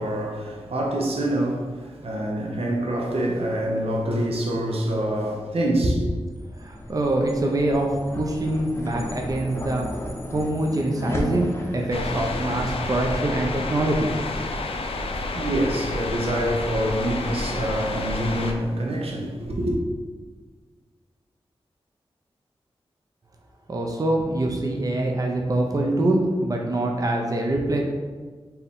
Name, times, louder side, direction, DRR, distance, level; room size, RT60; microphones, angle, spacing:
voice 1, 0.0-6.1 15.0-19.8, right 1 dB, 75° right, 0.7 m, -26 dB
sound 1, 6.1-16.6, left 1 dB, 25° left, 0.7 m, -35 dB
voice 2, 6.5-9.9 10.3-14.1 23.7-27.8, right 1 dB, 35° right, 0.5 m, -24 dB
sound 2, 11.9-18.5, left 2 dB, 70° left, 0.4 m, -30 dB
4.5 x 2.6 x 3.5 m
wide cardioid pair, 75°, 10 cm